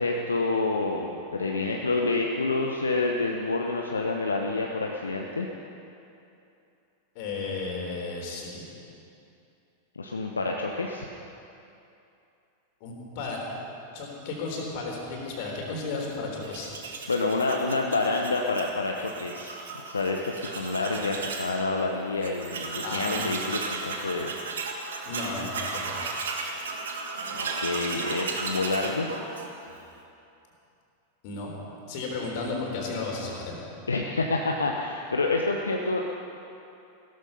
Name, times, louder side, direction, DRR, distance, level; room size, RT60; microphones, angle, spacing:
voice 1, 0.0-5.5 9.9-11.1 17.1-24.3 27.3-29.1 33.9-36.0, left 3 dB, 75° left, 1 dB, 1.0 m, -28 dB
voice 2, 7.2-8.6 12.8-13.4 13.9-16.7 22.8-23.2 25.0-26.1 31.2-31.5 31.9-33.6, left 3 dB, 45° left, -1 dB, 3.7 m, -34 dB
Tools, 16.4-21.5 21.9-22.0 22.2-29.8, right 4 dB, 65° right, 1.7 m, -35 dB
16.5 x 13.5 x 5.5 m, 2.7 s
figure-of-eight pair, 90°, 0 cm